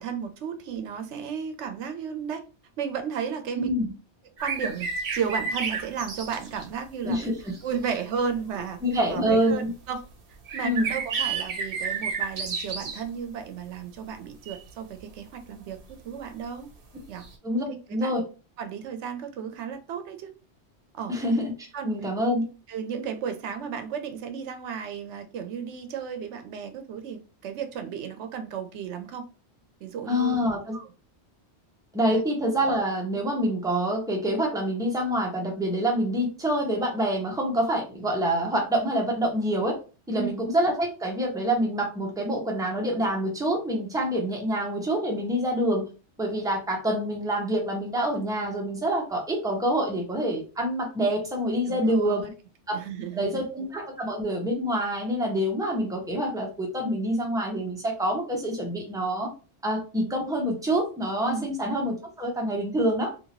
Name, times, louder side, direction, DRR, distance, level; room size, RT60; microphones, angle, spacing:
voice 1, 0.0-2.4 2.8-3.7 4.4-7.2 7.6-8.8 9.1-10.1 10.5-16.7 17.1-17.3 17.7-18.2 18.6-20.3 20.9-21.2 21.7-21.9 22.7-29.3 29.8-30.4 30.7-30.9 32.1-32.2 40.1-40.3 51.7-52.3 52.7-53.5 61.2-61.5, right 7 dB, 85° right, 7 dB, 0.9 m, -34 dB
voice 2, 3.6-3.9 7.0-7.4 8.8-9.7 10.6-10.9 17.4-17.6 17.9-18.2 21.1-21.5 21.8-22.4 30.1-30.7 31.9-39.8 40.1-45.9 46.2-52.3 53.1-59.3 59.6-63.1, equal, 5° right, -1 dB, 0.8 m, -26 dB
sound 1, 4.4-6.6 7.6-7.7 8.5-8.6 10.5-13.0 14.5-14.6 17.2-17.3, right 5 dB, 60° right, 1.0 m, -31 dB
3.0 x 2.7 x 2.9 m, 0.33 s
omnidirectional pair, 1.2 m